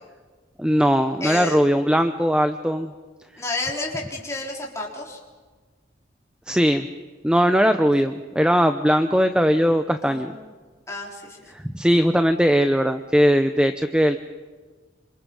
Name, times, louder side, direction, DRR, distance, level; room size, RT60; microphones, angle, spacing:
voice 1, 0.6-2.9 6.5-6.9 7.2-10.3 11.5-14.2, equal, 5° right, 8 dB, 0.7 m, -19 dB
voice 2, 1.2-1.6 3.4-5.2 10.0-10.4 10.9-11.4, left 2 dB, 15° left, -1 dB, 4.0 m, -30 dB
26.5 x 26.0 x 5.5 m, 1.4 s
head